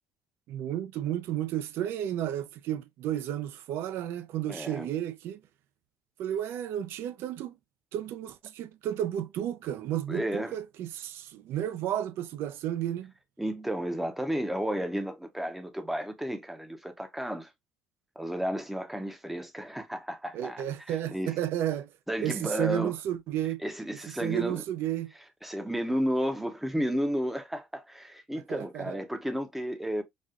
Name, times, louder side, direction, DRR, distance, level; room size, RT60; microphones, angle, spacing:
voice 1, 0.5-5.4 6.2-7.5 7.9-13.1 20.3-21.9 22.2-23.6 24.2-25.1 28.5-29.0, right 11 dB, 65° right, 0.4 m, -32 dB
voice 2, 4.5-4.9 10.1-10.6 13.4-17.5 18.2-21.4 22.1-23.0 23.6-24.6 25.4-30.0, equal, 5° right, 0.6 m, -32 dB
4.1 x 2.3 x 2.3 m
cardioid pair, 140°, 4 cm